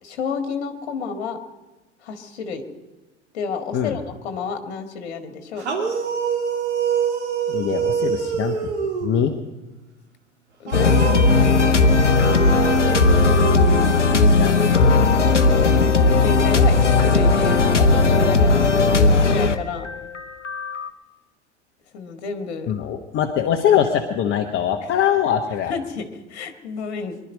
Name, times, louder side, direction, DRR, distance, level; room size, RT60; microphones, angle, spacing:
voice 1, 0.0-1.4 2.0-2.6 3.3-5.6 10.6-11.0 15.8-18.6 19.0-19.9 21.9-22.7 25.7-27.2, left 5 dB, 60° left, 7 dB, 1.7 m, -30 dB
sound 1, 5.6-9.3 10.7-14.3, right 6 dB, 70° right, 2.8 m, -26 dB
voice 2, 7.5-8.6 9.0-9.3 14.2-14.6 22.7-25.7, left 9 dB, 35° left, 3 dB, 1.2 m, -22 dB
sound 2, 10.7-20.9, left 3 dB, 85° left, 0.8 m, -17 dB
24.0 x 11.5 x 5.3 m, 1.1 s
figure-of-eight pair, 80°, 35 cm